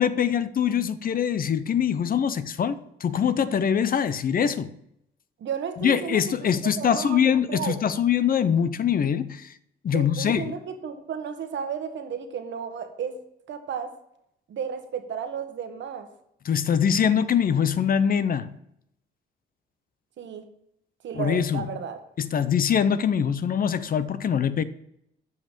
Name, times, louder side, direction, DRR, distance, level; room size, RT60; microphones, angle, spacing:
voice 1, 0.0-4.7 5.8-9.5 9.8-10.5 16.5-18.5 21.2-21.7 22.2-24.6, left 8 dB, 45° left, 0.6 m, -23 dB
voice 2, 5.4-7.2 7.5-7.8 9.9-13.2 13.5-13.9 14.5-16.1 20.2-20.5 21.0-22.0, right 7 dB, 65° right, 1.3 m, -33 dB
7.6 x 5.6 x 7.4 m
cardioid pair, 90°, 20 cm